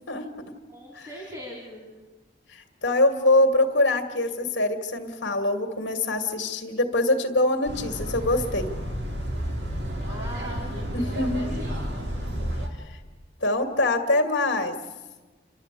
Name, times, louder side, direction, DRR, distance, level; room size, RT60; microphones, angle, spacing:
voice 1, 0.7-1.9 9.8-12.2, equal, 20° right, -3 dB, 4.1 m, -41 dB
voice 2, 2.5-8.7 10.9-11.6 13.4-14.7, left 2 dB, 70° left, 4 dB, 2.0 m, -24 dB
sound 1, 7.7-12.7, equal, 65° right, 3.2 m, -31 dB
29.0 x 12.5 x 8.3 m, 1.2 s
head